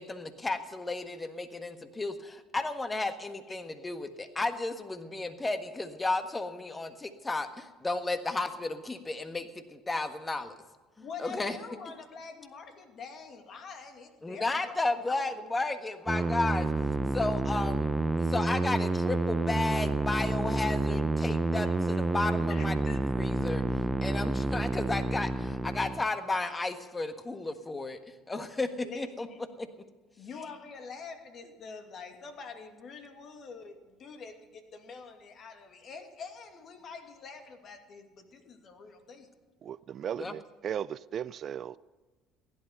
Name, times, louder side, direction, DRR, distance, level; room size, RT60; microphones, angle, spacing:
voice 1, 0.0-10.5 11.0-11.6 14.2-16.7 17.1-17.9 18.2-29.3 29.6-29.7 40.1-40.4, left 2 dB, 20° left, 1.5 m, -33 dB
voice 2, 11.0-14.8 15.0-15.4 21.6-22.1 22.5-23.0 28.8-29.4 30.2-39.3 40.3-40.4, left 5 dB, 50° left, 2.4 m, -46 dB
sound 1, 16.1-26.1, right 2 dB, 10° right, 0.8 m, -29 dB
voice 3, 39.6-41.8, right 9 dB, 50° right, 0.4 m, -36 dB
16.5 x 11.5 x 5.4 m
supercardioid pair, 80°, 0 cm